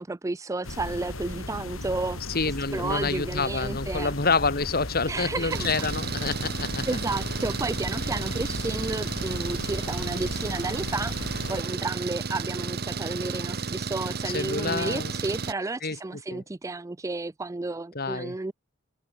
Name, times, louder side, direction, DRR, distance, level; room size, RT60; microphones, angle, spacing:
voice 1, 0.0-2.2 2.7-4.1 5.1-5.9 6.9-18.5, right 3 dB, 15° right, 0.4 m, -32 dB
sound 1, 0.6-11.6, left 1 dB, 90° left, 4.5 m, -36 dB
voice 2, 2.3-7.0 14.3-15.1 15.8-16.4 17.9-18.4, left 4 dB, 50° left, 2.2 m, -28 dB
Engine, 5.5-15.5, right 4 dB, 50° right, 1.1 m, -32 dB
head